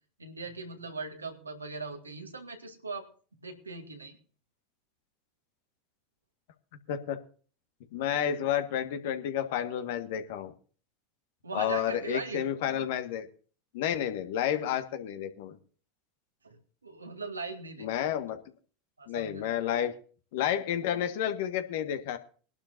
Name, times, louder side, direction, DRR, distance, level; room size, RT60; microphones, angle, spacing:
voice 1, 0.2-3.0 3.4-4.2 11.4-12.4 14.5-14.6 16.4-18.0 19.0-19.5, right 3 dB, 90° right, 4 dB, 2.3 m, -40 dB
voice 2, 7.9-10.5 11.5-13.3 13.7-15.6 17.8-18.4 19.1-19.9 20.3-22.2, left 10 dB, 65° left, 9 dB, 1.8 m, -30 dB
21.5 x 12.0 x 2.7 m, 0.40 s
figure-of-eight pair, 85°, 0 cm